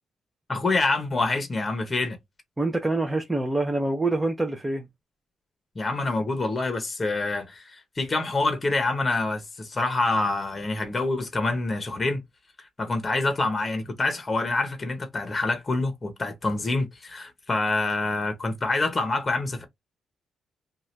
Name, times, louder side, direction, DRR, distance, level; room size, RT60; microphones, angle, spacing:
voice 1, 0.5-2.2 5.7-12.2 12.6-19.6, left 2 dB, 25° left, 0.9 m, -26 dB
voice 2, 2.6-4.9, right 2 dB, 10° right, 0.6 m, -26 dB
2.7 x 2.4 x 3.1 m
cardioid pair, 100°, 0 cm